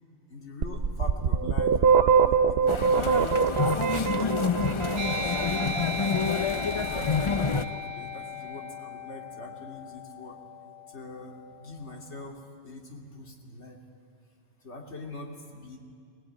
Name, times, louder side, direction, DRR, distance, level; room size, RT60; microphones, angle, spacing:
voice 1, 0.3-3.4 3.6-4.4 4.8-10.4 10.9-12.4 12.6-13.8 14.6-15.8, left 2 dB, 65° left, 1 dB, 2.9 m, -42 dB
sound 1, 0.6-5.5, right 6 dB, 60° right, 1.0 m, -23 dB
sound 2, 2.7-7.6, left 5 dB, 35° left, 0.6 m, -28 dB
sound 3, 5.0-12.0, left 1 dB, 35° right, 1.1 m, -37 dB
20.5 x 19.0 x 9.3 m, 2.4 s
omnidirectional pair, 1.2 m